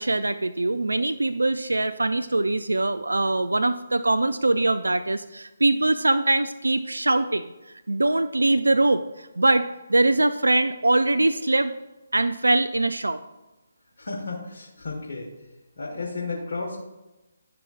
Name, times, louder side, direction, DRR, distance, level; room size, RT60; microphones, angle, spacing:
voice 1, 0.0-7.5 7.9-11.7 12.1-13.2, right 2 dB, 85° right, 9 dB, 0.3 m, -22 dB
voice 2, 14.0-15.3 15.8-16.8, left 3 dB, 60° left, -2 dB, 1.4 m, -33 dB
10.5 x 5.8 x 2.4 m, 1.0 s
figure-of-eight pair, 145°, 0 cm